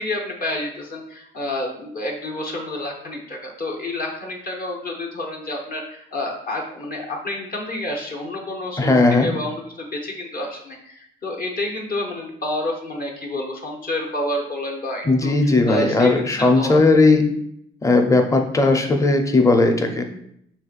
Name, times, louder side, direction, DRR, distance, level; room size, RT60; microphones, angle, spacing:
voice 1, 0.0-15.3 15.7-16.8, left 1 dB, 45° left, -1 dB, 0.9 m, -29 dB
voice 2, 8.8-9.3 15.0-17.3 17.8-20.0, left 3 dB, 15° left, 5 dB, 0.6 m, -17 dB
5.5 x 3.1 x 2.4 m, 0.72 s
cardioid pair, 90°, 20 cm